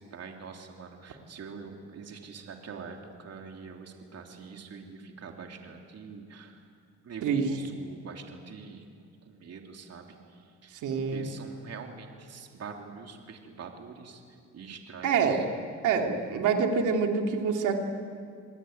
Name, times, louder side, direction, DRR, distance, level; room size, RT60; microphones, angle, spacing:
voice 1, 0.0-6.6 7.0-10.8 11.1-14.2 14.5-15.4, right 5 dB, 55° right, 2 dB, 3.4 m, -45 dB
voice 2, 10.8-11.2 15.0-15.4 15.8-17.8, right 6 dB, 85° right, 2 dB, 3.1 m, -26 dB
28.0 x 21.0 x 9.2 m, 2.2 s
cardioid pair, 90°, 30 cm